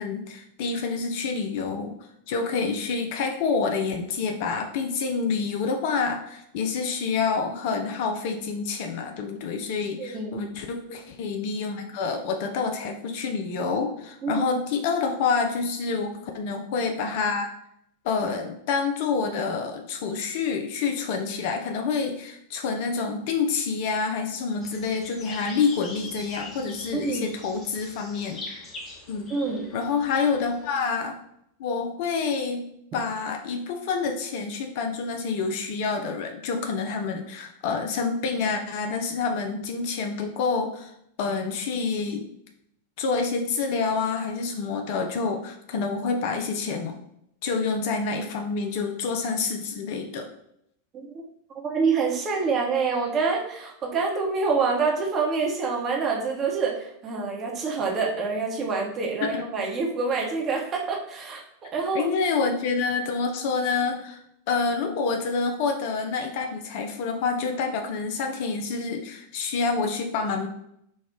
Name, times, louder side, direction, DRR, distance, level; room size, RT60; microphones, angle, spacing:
voice 1, 0.0-2.0 2.3-17.5 18.0-28.4 29.1-29.3 29.7-31.2 31.6-40.9 41.2-42.3 43.0-47.0 47.4-50.3 59.2-59.4 61.9-64.2 64.5-70.5, left 5 dB, 50° left, 4 dB, 0.5 m, -27 dB
voice 2, 10.0-10.4 14.2-14.4 26.9-27.4 29.3-29.7 50.9-51.1 51.5-62.1, right 4 dB, 30° right, -1 dB, 0.9 m, -26 dB
sound 1, 24.6-30.8, left 2 dB, 25° left, 1.1 m, -42 dB
4.0 x 2.3 x 3.6 m, 0.74 s
figure-of-eight pair, 90°, 0 cm